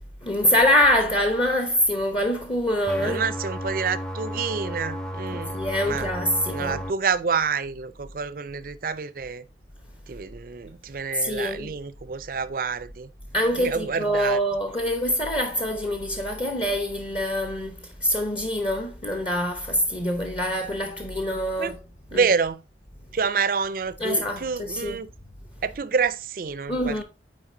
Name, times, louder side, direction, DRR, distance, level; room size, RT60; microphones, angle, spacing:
voice 1, 0.2-3.2 5.5-6.8 11.1-11.7 13.3-21.8 22.1-22.3 24.0-25.0 25.4-25.6 26.7-27.0, equal, 30° left, 0.8 m, -25 dB
sound 1, 2.9-6.9, equal, 5° left, 0.5 m, -33 dB
voice 2, 3.0-6.1 6.5-9.4 10.1-13.1 13.6-14.4 21.6-21.7 22.1-22.6 23.1-25.1 25.6-27.0, right 5 dB, 55° right, 0.5 m, -28 dB
8.8 x 4.4 x 2.6 m
head